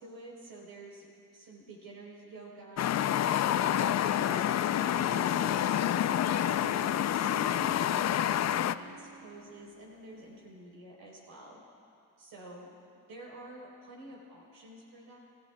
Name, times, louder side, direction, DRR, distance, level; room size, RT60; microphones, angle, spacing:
voice 1, 0.0-2.9 3.5-11.6 12.2-12.8 13.1-15.2, right 2 dB, 80° right, -3 dB, 3.9 m, -49 dB
sound 1, 2.8-8.7, left 11 dB, 45° left, 0.5 m, -28 dB
Harp, 3.5-10.6, right 5 dB, 25° right, 0.7 m, -48 dB
28.5 x 13.5 x 2.3 m, 2.5 s
supercardioid pair, 70°, 38 cm